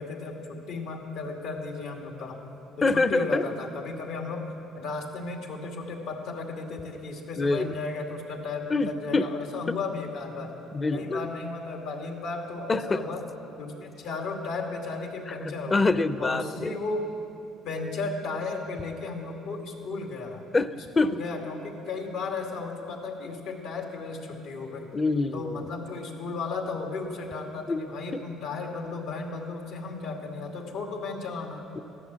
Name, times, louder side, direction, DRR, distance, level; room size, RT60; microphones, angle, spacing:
voice 1, 0.0-2.5 2.8-10.6 10.9-13.3 13.6-15.9 16.2-17.1 17.6-20.4 20.9-25.0 25.3-31.6, left 3 dB, 80° left, 2 dB, 2.3 m, -35 dB
voice 2, 2.8-3.4 7.4-7.7 8.7-9.3 9.7-9.8 10.7-11.3 12.7-13.0 15.3-15.4 15.7-16.7 20.5-21.2 24.9-25.7 27.7-27.8 28.1-28.2 31.8-31.9, left 3 dB, 25° left, 13 dB, 0.6 m, -25 dB
15.0 x 11.5 x 7.5 m, 2.9 s
cardioid pair, 100°, 0 cm